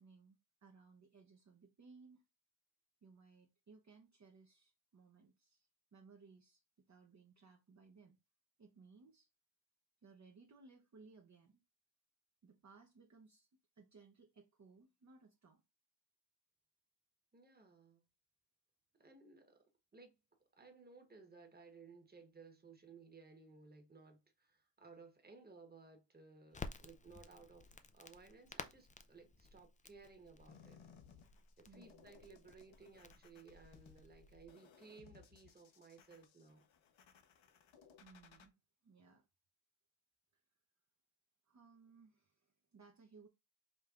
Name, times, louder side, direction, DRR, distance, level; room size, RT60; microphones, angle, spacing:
voice 1, 0.0-2.2 3.0-8.2 8.6-9.3 10.0-11.6 12.4-13.5 13.7-15.6 31.6-32.1 38.0-38.6 38.8-39.3 40.3-40.4 41.5-43.3, right 4 dB, 40° right, 0.7 m, -63 dB
voice 2, 17.3-18.0 19.0-19.6 19.9-20.1 20.5-30.8 31.6-36.6, right 4 dB, 20° right, 1.2 m, -60 dB
Crackle, 26.5-34.5, left 3 dB, 20° left, 0.3 m, -54 dB
sound 1, 30.5-38.5, left 6 dB, 80° left, 0.9 m, -63 dB
5.3 x 3.2 x 2.4 m
wide cardioid pair, 125°, 45 cm